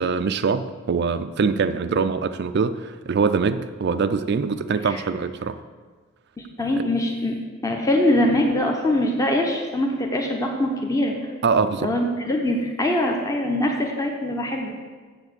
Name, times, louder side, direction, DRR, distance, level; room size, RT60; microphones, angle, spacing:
voice 1, 0.0-5.6 11.4-11.9, right 5 dB, 50° right, 10 dB, 0.4 m, -23 dB
voice 2, 6.4-7.4 7.6-11.1 11.8-14.7, left 1 dB, 15° left, 1 dB, 0.9 m, -23 dB
7.3 x 7.3 x 8.0 m, 1.5 s
head